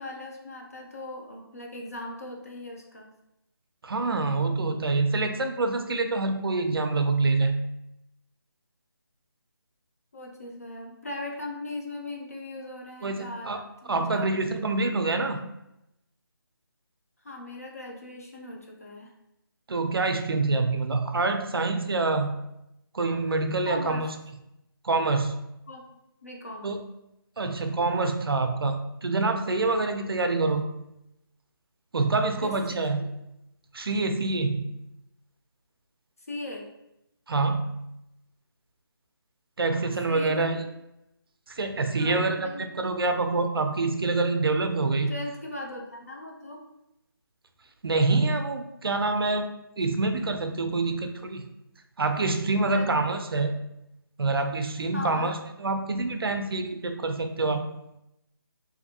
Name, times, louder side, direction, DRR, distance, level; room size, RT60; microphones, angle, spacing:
voice 1, 0.0-3.1 10.1-13.5 13.8-14.9 17.2-19.1 23.6-24.0 25.7-25.8 26.2-26.7 32.4-32.5 36.3-36.7 39.7-40.5 42.0-42.6 45.1-46.6 52.6-53.0 54.9-55.3, left 1 dB, 40° left, -1 dB, 0.5 m, -38 dB
voice 2, 3.8-7.6 13.0-13.6 13.9-15.4 19.7-22.3 22.9-24.1 24.8-25.3 26.6-26.8 27.4-30.7 31.9-33.0 33.7-34.7 37.3-37.8 39.6-40.6 41.5-45.1 47.8-49.5 49.8-51.5 52.0-53.5 54.2-57.6, right 3 dB, 70° right, 6 dB, 0.4 m, -26 dB
2.6 x 2.5 x 2.6 m, 0.86 s
figure-of-eight pair, 180°, 13 cm